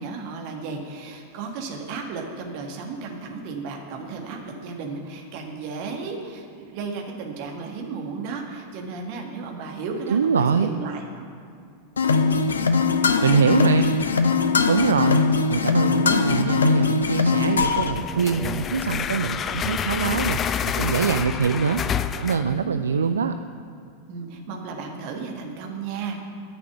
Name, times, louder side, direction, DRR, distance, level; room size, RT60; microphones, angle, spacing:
voice 1, 0.0-11.3 13.6-13.8 22.6-22.9 24.1-26.2, right 4 dB, 45° right, 2 dB, 1.6 m, -34 dB
voice 2, 10.1-10.7 12.8-13.9 14.7-15.2 15.5-21.8 22.1-23.3, right 6 dB, 70° right, 9 dB, 0.4 m, -23 dB
sound 1, 12.0-17.9, left 5 dB, 70° left, 0.6 m, -21 dB
sound 2, 17.6-22.6, left 8 dB, 25° left, 0.4 m, -28 dB
10.5 x 6.0 x 8.1 m, 2.4 s
figure-of-eight pair, 90°, 0 cm